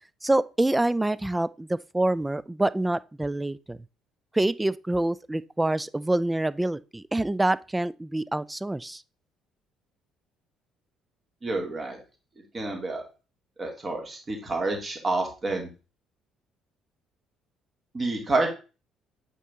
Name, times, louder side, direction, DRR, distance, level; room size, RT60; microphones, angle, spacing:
voice 1, 0.2-3.8 4.3-9.0, right 1 dB, 10° right, 0.4 m, -26 dB
voice 2, 11.4-12.0 12.5-13.0 13.6-15.7 17.9-18.5, right 2 dB, 30° right, 2.4 m, -28 dB
8.2 x 4.3 x 3.5 m
figure-of-eight pair, 50°, 0 cm